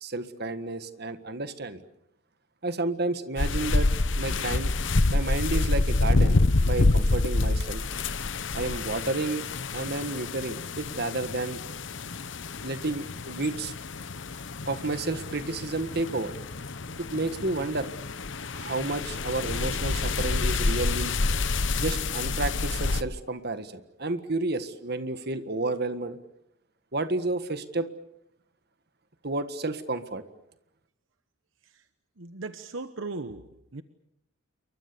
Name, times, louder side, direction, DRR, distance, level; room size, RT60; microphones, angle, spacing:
voice 1, 0.0-1.8 2.6-3.9 4.2-4.7 5.1-7.8 8.5-9.4 9.7-11.6 12.6-13.7 14.7-16.3 17.0-17.9 18.5-21.2 21.7-26.2 26.9-27.9 29.2-30.2, right 2 dB, 50° right, 10 dB, 1.7 m, -31 dB
sound 1, 3.4-23.0, left 3 dB, 60° left, 0.9 m, -27 dB
voice 2, 32.2-33.5 33.7-33.8, right 3 dB, 70° right, 10 dB, 1.1 m, -37 dB
28.5 x 23.5 x 6.9 m, 0.80 s
head